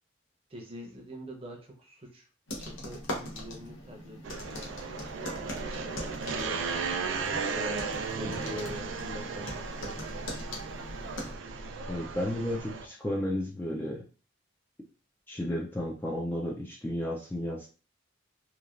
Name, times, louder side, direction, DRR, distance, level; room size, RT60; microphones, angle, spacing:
voice 1, 0.5-2.3 2.6-6.6 7.4-10.0, left 1 dB, 30° right, 1 dB, 0.6 m, -44 dB
sound 1, 2.5-11.3, left 1 dB, 90° left, 0.8 m, -41 dB
sound 2, 4.2-12.9, right 5 dB, 75° right, 0.4 m, -35 dB
voice 2, 11.9-14.0 15.3-17.7, left 1 dB, 10° left, -2 dB, 0.3 m, -33 dB
3.1 x 2.3 x 2.4 m, 0.36 s
head